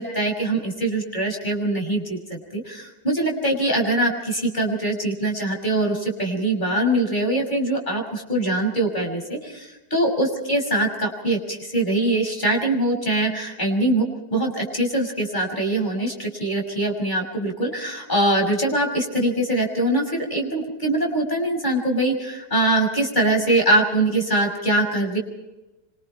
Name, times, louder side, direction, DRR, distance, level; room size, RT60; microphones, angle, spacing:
voice 1, 0.0-25.2, right 1 dB, 25° left, 1 dB, 6.4 m, -23 dB
27.5 x 25.0 x 4.5 m, 1.0 s
omnidirectional pair, 1.8 m